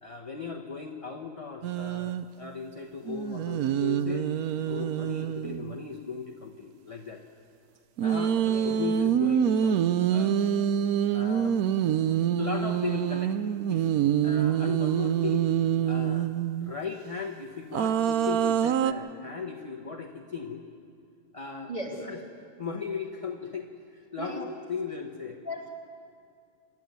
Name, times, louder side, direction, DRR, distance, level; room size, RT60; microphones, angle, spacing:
voice 1, 0.0-4.3 4.7-7.2 8.0-9.8 10.1-10.4 11.1-11.6 12.4-13.4 13.7-13.9 14.2-15.5 15.8-16.3 16.6-20.6 21.3-21.7 22.0-22.2 22.6-25.4, left 5 dB, 25° left, 1 dB, 0.8 m, -37 dB
sound 1, 1.6-2.3 3.1-5.8 8.0-16.7 17.7-18.9, right 9 dB, 70° right, 0.8 m, -26 dB
voice 2, 8.5-8.8 21.7-22.0 24.2-24.4 25.4-25.7, equal, 20° right, -1 dB, 3.4 m, -36 dB
27.5 x 12.0 x 9.4 m, 2.3 s
omnidirectional pair, 2.3 m